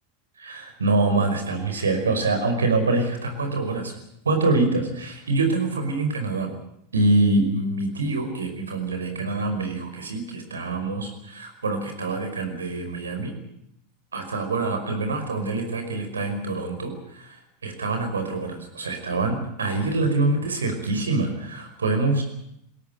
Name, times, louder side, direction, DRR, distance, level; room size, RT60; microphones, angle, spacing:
voice 1, 0.4-3.9 4.3-6.5 6.9-13.3 14.1-22.2, right 3 dB, 85° right, 5 dB, 5.3 m, -25 dB
22.0 x 17.5 x 9.4 m, 0.76 s
hypercardioid pair, 90°, 0 cm